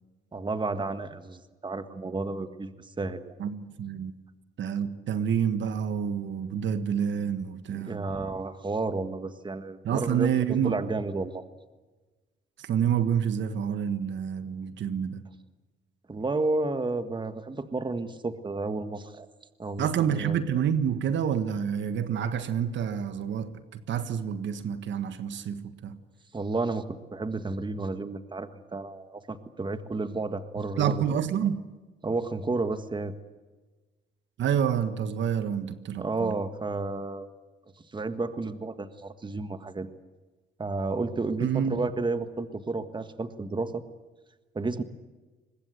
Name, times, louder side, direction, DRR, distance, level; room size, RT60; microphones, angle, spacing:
voice 1, 0.3-2.7 3.0-3.3 7.7-11.4 16.1-19.3 19.6-19.9 20.2-20.4 26.3-31.0 32.0-33.1 36.0-37.3 37.9-39.9 40.6-43.8 44.5-44.8, right 3 dB, 25° right, 1.6 m, -31 dB
voice 2, 3.4-4.1 4.6-8.0 9.8-10.7 12.6-15.2 19.8-26.0 30.5-31.6 34.4-36.4 41.4-41.8, right 8 dB, 70° right, 1.6 m, -28 dB
24.0 x 21.5 x 8.1 m
cardioid pair, 90°, 20 cm